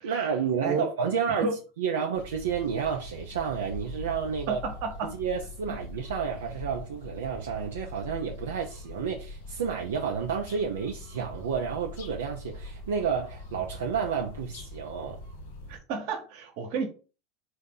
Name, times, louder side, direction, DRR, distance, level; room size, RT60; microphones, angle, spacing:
voice 1, 0.0-1.5 1.8-4.6 5.0-15.2, right 6 dB, 80° right, 0.5 m, -30 dB
sound 1, 2.1-15.8, left 1 dB, 75° left, 1.1 m, -42 dB
voice 2, 4.5-5.1 5.7-5.8 15.7-16.9, right 4 dB, 60° right, 1.1 m, -32 dB
3.7 x 2.7 x 3.8 m
hypercardioid pair, 80°, 0 cm